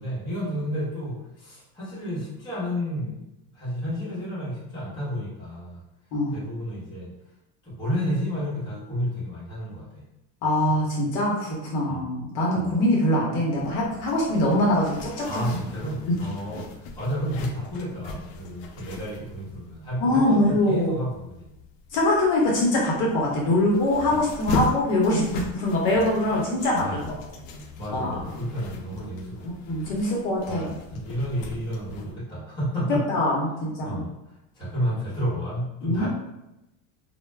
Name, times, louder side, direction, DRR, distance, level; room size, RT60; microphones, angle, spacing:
voice 1, 0.0-3.2 3.5-5.8 6.3-7.1 7.6-10.0 11.9-12.1 12.5-12.8 15.2-21.5 24.1-24.3 26.8-27.1 27.8-29.5 29.9-30.1 30.4-33.0 33.8-36.1, equal, 10° left, -10 dB, 0.8 m, -31 dB
voice 2, 10.4-15.4 20.0-20.9 21.9-26.9 27.9-28.2 29.4-30.7 33.1-34.0 35.8-36.1, left 1 dB, 55° left, -3 dB, 0.7 m, -23 dB
Zipper (clothing), 13.6-32.1, left 3 dB, 90° left, 0.5 m, -38 dB
2.2 x 2.0 x 3.2 m, 0.92 s
cardioid pair, 170°, 39 cm